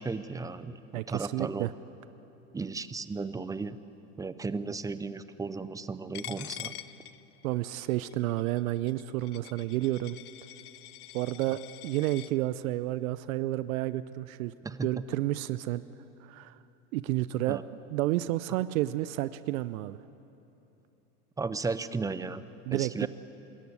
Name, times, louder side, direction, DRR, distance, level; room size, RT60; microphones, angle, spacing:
voice 1, 0.0-1.7 2.5-3.8 4.2-6.7 14.6-14.9 17.5-17.6 21.4-22.4 22.7-23.1, right 4 dB, 10° right, 14 dB, 0.5 m, -35 dB
voice 2, 0.9-1.7 7.4-10.2 11.1-14.5 14.8-15.8 16.2-16.6 16.9-17.6 17.9-20.0 22.7-23.1, right 16 dB, 65° right, 15 dB, 0.7 m, -30 dB
Coin (dropping), 6.1-12.3, left 14 dB, 75° left, 0.9 m, -45 dB
25.0 x 14.0 x 9.6 m, 3.0 s
hypercardioid pair, 105°, 45 cm